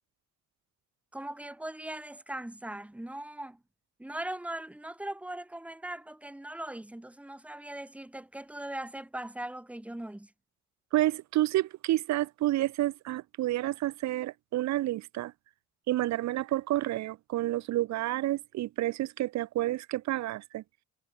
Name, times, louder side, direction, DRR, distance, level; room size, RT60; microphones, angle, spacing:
voice 1, 1.1-3.6 4.0-10.3, right 1 dB, 5° right, 1.2 m, -40 dB
voice 2, 10.9-15.3 15.9-20.6, right 15 dB, 65° right, 0.5 m, -29 dB
cardioid pair, 90°, 30 cm